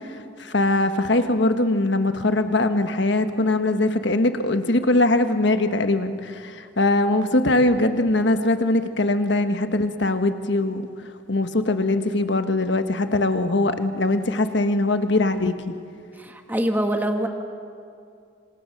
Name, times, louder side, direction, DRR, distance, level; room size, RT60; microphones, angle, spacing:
voice 1, 0.0-10.9 11.3-15.7, left 2 dB, 70° left, 8 dB, 1.4 m, -21 dB
voice 2, 16.2-17.3, right 1 dB, 10° right, 4 dB, 1.4 m, -24 dB
28.0 x 26.0 x 6.6 m, 2.4 s
head